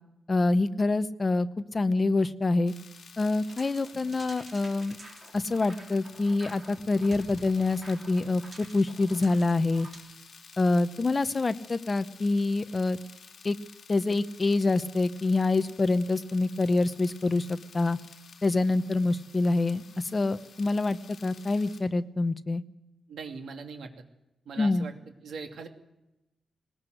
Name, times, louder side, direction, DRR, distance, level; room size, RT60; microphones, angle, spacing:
voice 1, 0.3-2.7 3.2-5.0 5.3-9.9 10.6-13.0 13.4-13.6 13.9-18.0 18.4-19.8 20.1-22.6 24.6-24.9, left 3 dB, 25° left, 11 dB, 0.8 m, -26 dB
sound 1, 2.7-21.8, left 5 dB, 55° left, 3.7 m, -52 dB
sound 2, 3.4-10.0, right 2 dB, 30° right, 3.6 m, -50 dB
voice 2, 23.1-23.9 24.5-24.9 25.2-25.7, right 5 dB, 80° right, 5 dB, 2.5 m, -40 dB
20.5 x 19.5 x 7.9 m, 0.93 s
wide cardioid pair, 165°, 0 cm